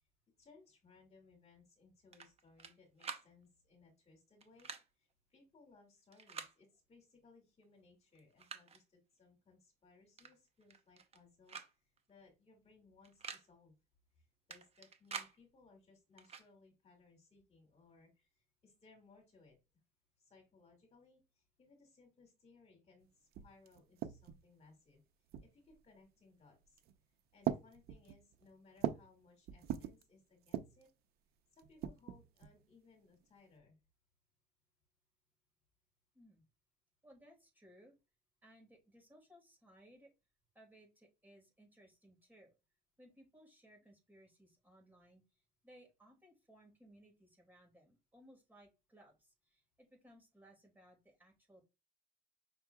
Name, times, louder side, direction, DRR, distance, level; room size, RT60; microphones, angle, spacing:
voice 1, 0.4-4.7 5.0-11.8 12.1-13.7 14.2-18.3 18.6-19.6 20.2-25.0 25.4-26.8 27.3-30.9 31.5-33.8, left 3 dB, 40° left, 3 dB, 2.3 m, -65 dB
sound 1, 2.1-2.7 3.0-3.3 4.4-4.8 6.1-6.5 7.6-7.7 8.1-8.8 10.2-10.3 10.6-11.2 11.5-11.7 12.0-12.1 13.0-13.4 14.5-15.3 16.2-16.5, right 6 dB, 35° right, 0.8 m, -47 dB
sound 2, 23.0-23.1 23.3-24.5 25.3-25.8 26.6-27.0 27.4-29.2 29.5-30.0 30.4-30.9 31.6-32.6, right 10 dB, 70° right, 0.6 m, -41 dB
voice 2, 37.0-37.9 38.4-40.1 40.5-42.5 43.0-51.6, equal, 10° right, 1 dB, 2.4 m, -63 dB
6.0 x 3.6 x 2.3 m, 0.26 s
cardioid pair, 110°, 17 cm